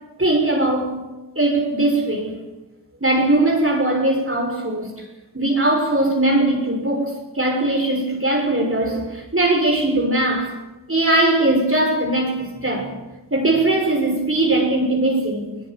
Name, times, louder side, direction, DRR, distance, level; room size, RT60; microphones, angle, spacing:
voice 1, 0.2-1.0 1.3-2.4 3.0-4.9 5.3-10.5 10.9-12.9 13.3-15.5, right 2 dB, 35° right, 1 dB, 6.7 m, -20 dB
21.0 x 20.5 x 9.6 m, 1.1 s
wide cardioid pair, 40°, 39 cm